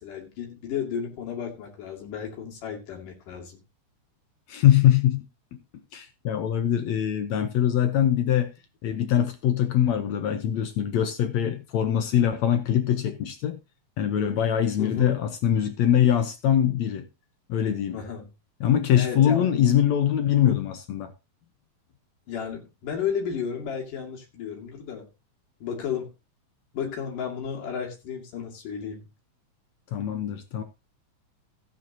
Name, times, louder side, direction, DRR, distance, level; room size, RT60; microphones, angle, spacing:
voice 1, 0.0-3.6 14.8-15.2 17.9-18.3 19.0-19.5 22.3-25.1 25.6-26.1 26.7-29.1, left 7 dB, 90° left, 4.0 m, -33 dB
voice 2, 4.5-5.3 5.5-5.6 5.9-8.5 8.8-13.6 14.0-17.1 17.5-18.0 18.6-21.1 29.9-30.6, left 10 dB, 65° left, 2.1 m, -23 dB
15.5 x 9.3 x 2.9 m
omnidirectional pair, 3.6 m